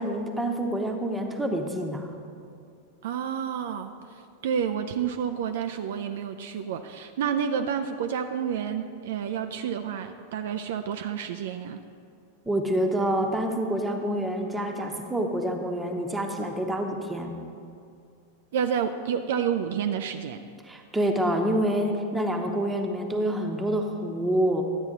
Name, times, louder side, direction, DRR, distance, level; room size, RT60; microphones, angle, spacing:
voice 1, 0.0-2.1 12.5-17.4 20.6-24.6, right 1 dB, 10° right, 3 dB, 1.0 m, -27 dB
voice 2, 3.0-11.8 18.5-20.4, right 8 dB, 55° right, 7 dB, 0.4 m, -29 dB
12.0 x 8.9 x 3.8 m, 2.3 s
figure-of-eight pair, 90°, 0 cm